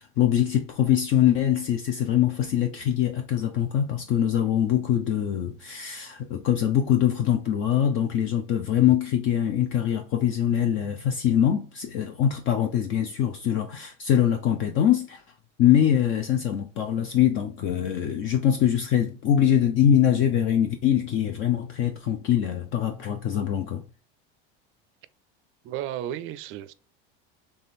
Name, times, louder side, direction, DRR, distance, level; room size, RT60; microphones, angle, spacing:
voice 1, 0.0-15.2 15.6-23.8, left 10 dB, 45° left, 0.5 m, -23 dB
voice 2, 25.6-26.7, right 11 dB, 45° right, 0.4 m, -33 dB
3.6 x 3.3 x 4.2 m
supercardioid pair, 135°, 29 cm